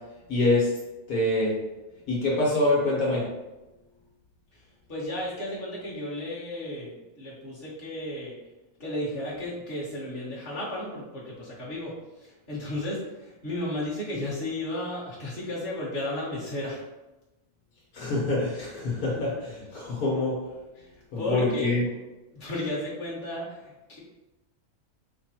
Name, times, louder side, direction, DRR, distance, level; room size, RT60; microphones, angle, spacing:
voice 1, 0.3-0.7 1.1-1.5 2.1-3.2 17.9-20.4 21.1-21.8, left 2 dB, 70° left, -6 dB, 1.8 m, -25 dB
voice 2, 4.9-8.4 8.8-16.8 20.8-20.9 21.2-21.7 22.3-24.0, left 1 dB, 35° left, -7 dB, 1.7 m, -34 dB
5.1 x 2.3 x 4.3 m, 1.0 s
omnidirectional pair, 1.6 m